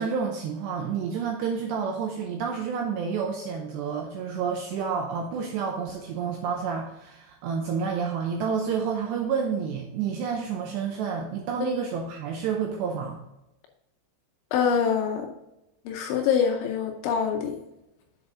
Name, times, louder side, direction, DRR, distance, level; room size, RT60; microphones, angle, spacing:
voice 1, 0.0-13.2, right 6 dB, 80° right, 2 dB, 2.5 m, -29 dB
voice 2, 14.5-15.3 15.9-17.6, left 7 dB, 80° left, 3 dB, 2.8 m, -25 dB
7.9 x 6.5 x 3.7 m, 0.91 s
omnidirectional pair, 5.8 m